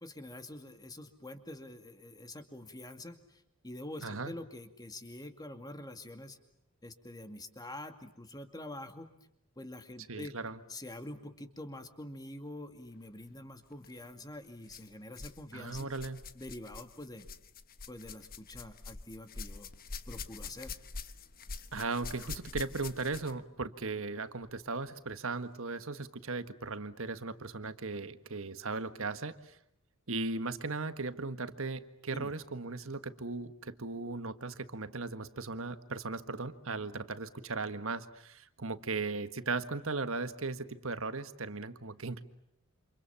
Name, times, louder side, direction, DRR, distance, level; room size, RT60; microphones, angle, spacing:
voice 1, 0.0-6.4 6.8-9.1 9.6-10.3 10.7-15.9 16.4-17.3 17.9-19.7 20.1-20.7 32.1-32.3, left 1 dB, 20° left, 8 dB, 2.4 m, -46 dB
voice 2, 4.0-4.3 10.1-10.6 15.5-16.2 21.7-29.6 30.1-42.2, right 3 dB, 65° right, 11 dB, 1.6 m, -37 dB
sound 1, 13.7-13.9 14.7-15.4 15.7-23.5 24.4-24.5 25.3-25.4, left 4 dB, 40° left, 1.2 m, -45 dB
29.0 x 27.5 x 7.1 m, 0.78 s
head